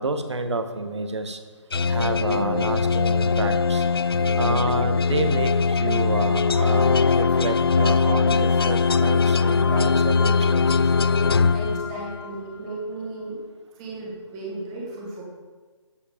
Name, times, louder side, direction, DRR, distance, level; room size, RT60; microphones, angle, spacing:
voice 1, 0.0-1.4 1.9-3.8 4.4-10.7, right 3 dB, 65° right, 8 dB, 1.2 m, -29 dB
sound 1, 1.7-12.4, left 5 dB, 50° left, 0.4 m, -21 dB
voice 2, 11.5-13.4 13.8-15.2, right 2 dB, 10° right, -3 dB, 1.4 m, -35 dB
13.0 x 5.0 x 5.0 m, 1.4 s
hypercardioid pair, 175°, 16 cm